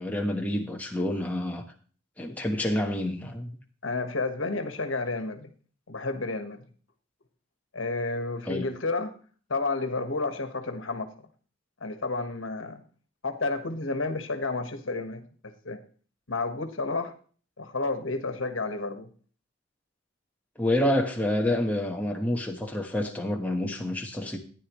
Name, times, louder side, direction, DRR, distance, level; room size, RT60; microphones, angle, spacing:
voice 1, 0.0-1.6 2.2-3.6 8.5-8.7 20.6-24.4, left 1 dB, 10° left, 1.2 m, -28 dB
voice 2, 3.8-5.5 5.9-6.6 7.7-9.1 9.5-11.1 11.8-12.8 13.2-15.8 16.3-17.1 17.6-19.1, left 3 dB, 80° left, 1.4 m, -31 dB
13.5 x 10.0 x 3.1 m
head